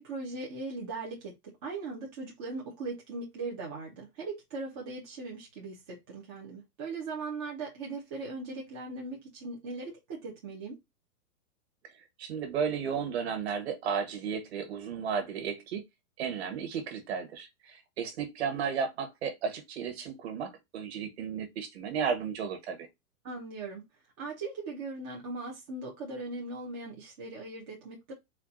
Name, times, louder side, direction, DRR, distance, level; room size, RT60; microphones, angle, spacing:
voice 1, 0.0-10.8 23.2-23.8 24.2-28.1, right 3 dB, 15° right, 0.5 m, -39 dB
voice 2, 12.2-15.8 16.2-22.9, right 6 dB, 45° right, 1.5 m, -34 dB
4.3 x 2.3 x 3.9 m
hypercardioid pair, 160°, 45 cm